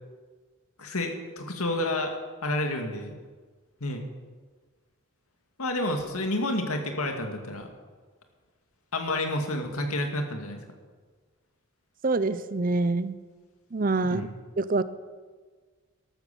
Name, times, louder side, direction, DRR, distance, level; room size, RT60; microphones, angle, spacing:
voice 1, 0.8-2.2 2.4-3.1 3.8-4.0 5.6-7.7 8.9-10.6 14.0-14.3, left 1 dB, 90° left, 4 dB, 2.3 m, -29 dB
voice 2, 12.0-13.2 13.7-14.2 14.6-14.8, right 3 dB, 40° right, 15 dB, 0.6 m, -25 dB
13.0 x 12.5 x 7.0 m, 1.4 s
head